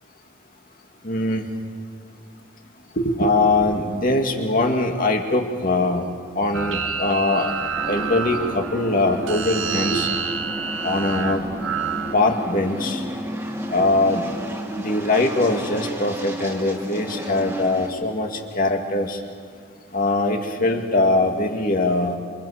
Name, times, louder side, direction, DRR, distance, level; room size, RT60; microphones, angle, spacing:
voice 1, 1.0-1.5 3.0-7.6 7.9-10.1 10.8-11.4 12.1-13.0 13.7-14.3 14.8-19.2 19.9-22.2, left 2 dB, 40° left, 3 dB, 2.4 m, -22 dB
sound 1, 6.5-12.1, right 6 dB, 70° right, 1.4 m, -28 dB
sound 2, 7.8-17.9, right 1 dB, 10° right, 2.6 m, -32 dB
27.5 x 27.0 x 5.1 m, 2.2 s
head